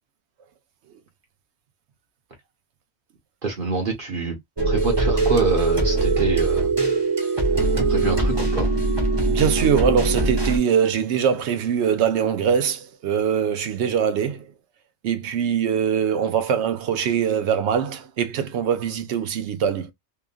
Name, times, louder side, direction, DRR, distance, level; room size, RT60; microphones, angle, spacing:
voice 1, 3.4-4.4 4.6-6.7 7.9-8.7, right 3 dB, 50° right, 1.1 m, -26 dB
sound 1, 4.6-10.6, right 3 dB, 25° right, 0.9 m, -21 dB
voice 2, 9.3-14.5 15.0-19.9, right 8 dB, 75° right, 0.9 m, -22 dB
2.9 x 2.4 x 2.3 m
omnidirectional pair, 1.2 m